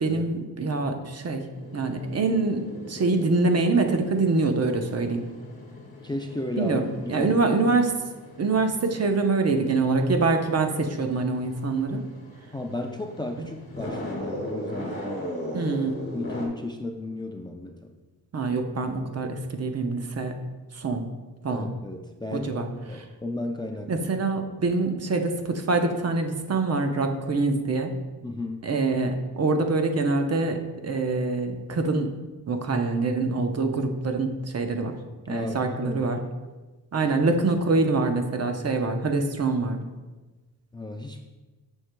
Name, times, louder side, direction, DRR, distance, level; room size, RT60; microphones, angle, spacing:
voice 1, 0.0-1.5 1.7-5.2 6.6-6.8 7.1-7.9 8.4-12.1 13.4-13.5 15.5-16.0 18.3-20.3 20.7-21.0 21.4-21.7 22.3-22.7 23.9-27.9 28.6-32.1 32.5-35.0 35.3-36.2 36.9-39.8, right 3 dB, 40° right, 5 dB, 0.8 m, -25 dB
sound 1, 1.5-16.5, left 1 dB, 35° left, 1.9 m, -39 dB
voice 2, 6.0-7.5 12.5-15.6 16.1-17.8 21.5-24.1 28.2-28.6 35.3-36.1 37.0-37.1 40.7-41.2, left 2 dB, 10° left, 2 dB, 0.4 m, -34 dB
7.5 x 6.4 x 2.2 m, 1.2 s
cardioid pair, 100°, 39 cm